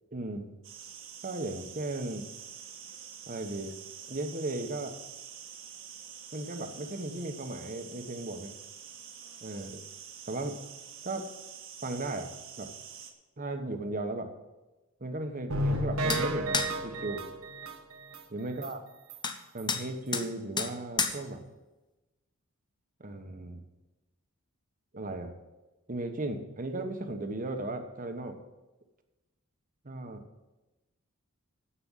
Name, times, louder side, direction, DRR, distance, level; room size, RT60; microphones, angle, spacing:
voice 1, 0.1-0.5 1.2-2.3 3.3-3.8 4.1-5.0 6.3-8.6 9.4-9.9 10.3-10.6 11.0-11.2 11.8-12.7 13.4-14.3 15.0-17.2 18.3-18.8 19.5-21.4 23.0-23.6 24.9-25.3 25.9-28.4 29.8-30.2, right 2 dB, 40° right, 7 dB, 1.2 m, -36 dB
sound 1, 0.6-13.1, right 8 dB, 65° right, 1.5 m, -47 dB
sound 2, 15.5-18.2 18.6-18.7 19.1-19.2 19.6-19.7, right 1 dB, 85° right, 1.3 m, -32 dB
sound 3, 16.1-16.2 16.5-16.7 19.2-19.4 19.7-19.9 20.1-20.3 20.6-20.7 21.0-21.2, left 5 dB, 20° left, 0.8 m, -29 dB
9.9 x 7.8 x 7.3 m, 1.1 s
head